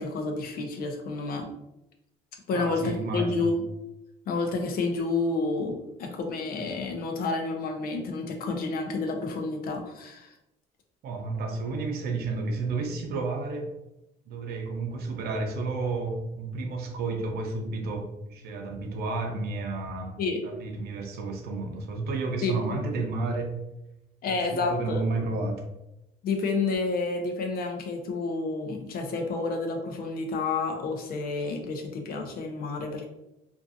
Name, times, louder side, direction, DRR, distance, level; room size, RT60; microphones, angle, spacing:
voice 1, 0.0-1.5 2.5-3.5 4.3-10.3 20.2-20.4 22.4-22.6 24.2-25.0 26.2-33.1, left 3 dB, 60° left, 3 dB, 0.6 m, -30 dB
voice 2, 2.5-3.5 11.0-13.7 14.3-20.1 20.4-23.6 24.2-25.7, right 3 dB, 70° right, 3 dB, 0.6 m, -31 dB
2.6 x 2.4 x 2.5 m, 0.89 s
cardioid pair, 110°, 17 cm